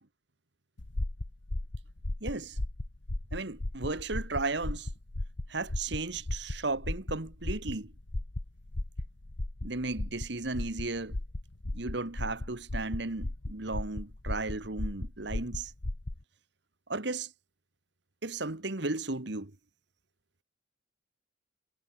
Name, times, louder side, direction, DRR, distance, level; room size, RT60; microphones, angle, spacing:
sound 1, 0.8-16.2, left 1 dB, 70° left, 1.4 m, -36 dB
voice 1, 2.2-2.6 3.3-4.9 5.5-7.9 9.6-11.2 11.7-15.7 16.9-17.3 18.2-19.5, right 3 dB, 60° right, 1.6 m, -35 dB
head